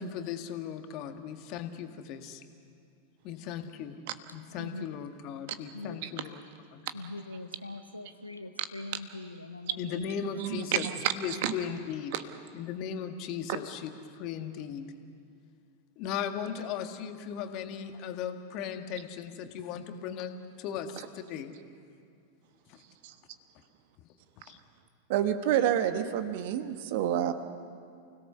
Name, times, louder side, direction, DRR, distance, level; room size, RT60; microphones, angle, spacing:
voice 1, 0.0-2.4 3.2-4.0 4.3-6.4 6.7-6.8 9.8-10.8 11.1-12.1 12.5-13.9 14.1-14.9 16.0-20.3 20.6-21.5 24.5-24.6, left 8 dB, 40° left, 7 dB, 1.7 m, -37 dB
voice 2, 6.9-10.3, left 2 dB, 85° left, 9 dB, 1.1 m, -42 dB
voice 3, 10.3-11.1 11.4-11.5 12.1-12.2 21.0-21.1 23.0-23.1 24.4-24.5 25.1-27.3, right 11 dB, 50° right, 10 dB, 1.3 m, -29 dB
29.5 x 17.5 x 6.9 m, 2.4 s
figure-of-eight pair, 90°, 0 cm